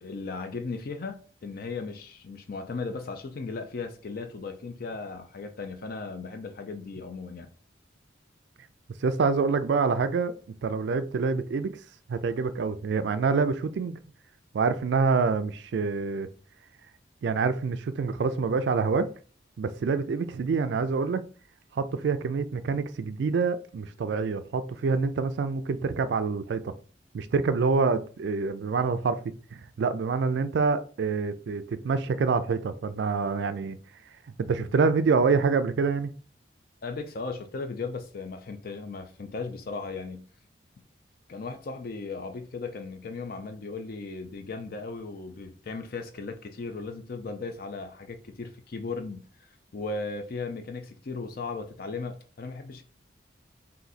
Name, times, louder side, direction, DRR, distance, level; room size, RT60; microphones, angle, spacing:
voice 1, 0.0-7.5 36.8-40.3 41.3-52.8, left 4 dB, 50° left, 0.4 m, -37 dB
voice 2, 9.0-10.3 10.6-11.7 12.1-14.0 14.5-16.3 17.2-19.1 19.6-21.2 21.7-26.7 27.1-29.2 29.5-33.8 34.4-36.1, right 4 dB, 65° right, 0.3 m, -26 dB
3.9 x 2.6 x 4.0 m
head